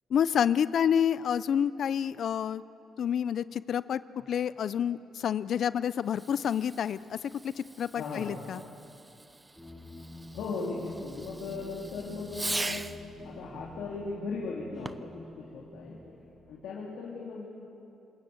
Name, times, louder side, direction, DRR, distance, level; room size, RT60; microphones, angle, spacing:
voice 1, 0.1-2.6 3.0-4.0 4.3-7.2 7.4-8.6, left 8 dB, 60° left, 17 dB, 0.5 m, -28 dB
Fireworks, 6.0-13.1 14.7-15.2, right 2 dB, 20° right, 0.7 m, -41 dB
voice 2, 7.9-8.4 10.3-12.8 13.2-16.0 16.5-17.5, left 4 dB, 80° left, -4 dB, 3.2 m, -37 dB
sound 1, 9.6-16.7, left 1 dB, 5° left, 2.2 m, -49 dB
26.5 x 20.5 x 8.0 m, 2.9 s
cardioid pair, 90°, 0 cm